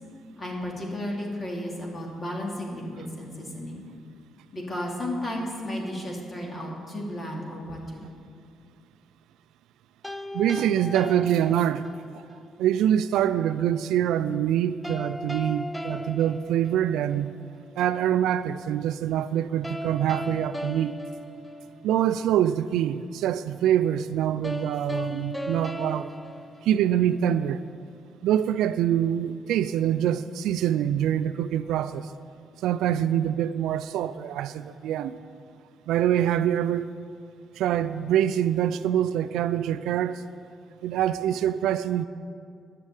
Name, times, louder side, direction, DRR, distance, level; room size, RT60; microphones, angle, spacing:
voice 1, 0.4-3.8 4.5-8.1, left 1 dB, 35° left, 2.6 m, -33 dB
sound 1, 10.0-12.2 14.8-17.3 19.6-22.2 24.4-27.3, equal, 5° left, 0.4 m, -36 dB
voice 2, 10.3-11.9 12.6-17.4 17.8-20.9 21.8-26.1 26.6-27.6 28.2-32.1 32.6-35.1 35.9-36.9 37.6-40.2 40.8-42.1, right 10 dB, 85° right, 0.3 m, -25 dB
10.5 x 6.6 x 8.2 m
cardioid pair, 90°, 0 cm